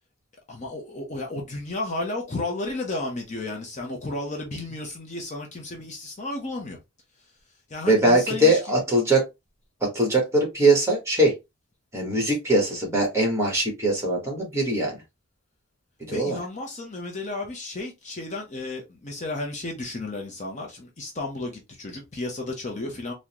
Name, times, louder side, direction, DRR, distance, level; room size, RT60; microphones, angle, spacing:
voice 1, 0.5-6.8 7.7-8.6 16.1-23.1, left 2 dB, 35° left, 0.6 m, -33 dB
voice 2, 7.9-9.2 9.8-11.4 11.9-15.0 16.1-16.4, right 1 dB, 15° right, 1.2 m, -21 dB
3.6 x 2.1 x 2.9 m
head